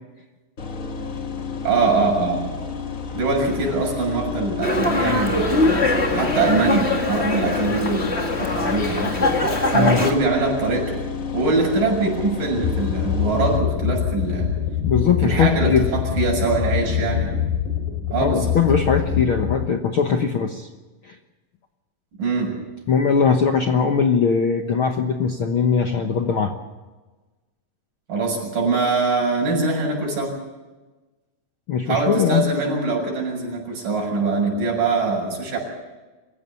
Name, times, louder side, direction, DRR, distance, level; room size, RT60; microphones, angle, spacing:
sound 1, 0.6-13.6, left 4 dB, 40° left, 1.1 m, -31 dB
voice 1, 1.6-2.5 3.1-5.8 6.1-9.1 9.7-11.0 11.3-14.5 15.2-17.3 18.1-18.6 22.2-22.6 28.1-30.4 31.9-35.6, right 3 dB, 75° right, -1 dB, 8.5 m, -23 dB
Dog, 4.6-10.1, left 2 dB, 20° left, 2.1 m, -22 dB
sound 2, 12.6-19.6, left 9 dB, 85° left, 4.1 m, -24 dB
voice 2, 14.8-15.9 18.2-20.7 21.0-21.1 22.9-26.5 31.7-32.5, left 6 dB, 60° left, 4 dB, 1.4 m, -20 dB
27.0 x 16.0 x 6.9 m, 1.2 s
omnidirectional pair, 3.9 m